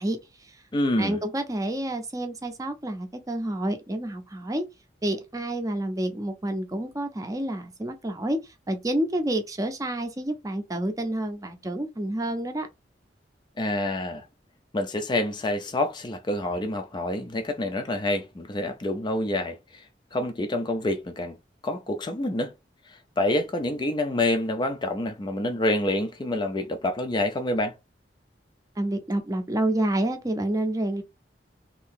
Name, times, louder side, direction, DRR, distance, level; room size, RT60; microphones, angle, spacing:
voice 1, 0.0-0.6 1.0-4.7 5.0-12.7 28.8-31.0, right 1 dB, 20° right, 0.6 m, -29 dB
voice 2, 0.7-1.2 13.6-14.3 14.7-19.8 20.1-21.4 21.6-22.5 22.9-27.8, left 1 dB, 25° left, 0.4 m, -27 dB
2.8 x 2.7 x 3.6 m
head